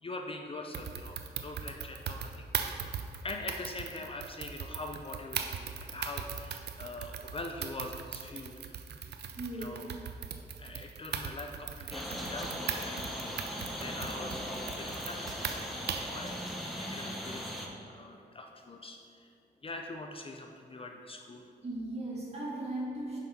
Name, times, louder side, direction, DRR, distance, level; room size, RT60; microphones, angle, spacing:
voice 1, 0.0-2.9 3.2-8.5 9.6-9.8 10.6-13.5 13.8-16.5 16.8-17.5 17.9-19.3 19.6-21.4, left 2 dB, 30° left, 3 dB, 0.5 m, -43 dB
sound 1, 0.7-16.2, right 7 dB, 75° right, 0.5 m, -39 dB
voice 2, 9.4-9.8 21.6-23.2, right 1 dB, 35° right, -3 dB, 1.6 m, -37 dB
sound 2, 11.9-17.7, equal, ahead, 0.9 m, -38 dB
5.8 x 5.4 x 4.4 m, 2.4 s
cardioid pair, 90°, 18 cm